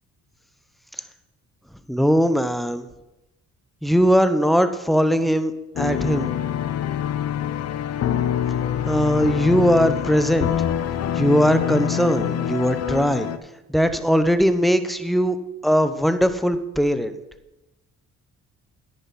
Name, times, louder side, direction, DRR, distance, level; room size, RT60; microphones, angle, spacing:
voice 1, 1.9-2.9 3.8-6.3 8.9-10.5 11.1-13.3 13.7-15.4 15.6-17.2, equal, ahead, 10 dB, 0.8 m, -20 dB
sound 1, 5.8-13.4, left 10 dB, 55° left, 0.7 m, -25 dB
10.0 x 9.6 x 4.2 m, 0.98 s
cardioid pair, 90°, 30 cm